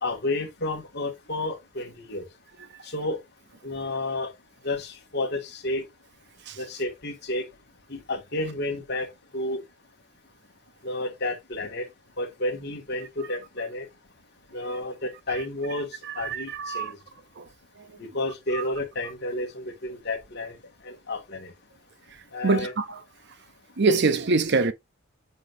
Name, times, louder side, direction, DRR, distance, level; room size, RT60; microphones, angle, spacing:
voice 1, 0.0-2.3 2.8-3.2 3.6-4.3 4.6-5.8 6.6-7.4 7.9-9.1 9.3-9.6 10.8-11.9 12.2-13.9 14.5-15.9 16.2-17.0 18.0-20.6 20.8-21.5 22.3-22.7, left 2 dB, 50° left, 2.1 m, -31 dB
voice 2, 16.0-16.9 17.4-17.5 17.8-17.9 18.5-18.6 22.4-23.0 23.8-24.7, right 3 dB, 50° right, 0.7 m, -24 dB
8.2 x 4.7 x 2.7 m
head